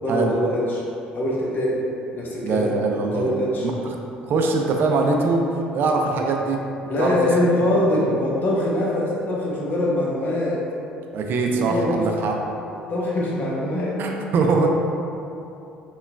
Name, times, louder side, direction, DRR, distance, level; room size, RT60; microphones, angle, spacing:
voice 1, 0.0-0.8 1.1-1.8 2.1-2.7 3.1-3.7 6.9-10.6 11.4-12.1 12.9-14.0, left 1 dB, 45° left, -4 dB, 0.8 m, -23 dB
voice 2, 2.4-3.3 3.6-3.9 4.2-5.5 5.7-6.6 7.0-7.3 11.1-12.4 14.0-14.7, right 3 dB, 50° right, 1 dB, 0.4 m, -22 dB
5.5 x 2.3 x 2.3 m, 2.7 s
hypercardioid pair, 55°, 4 cm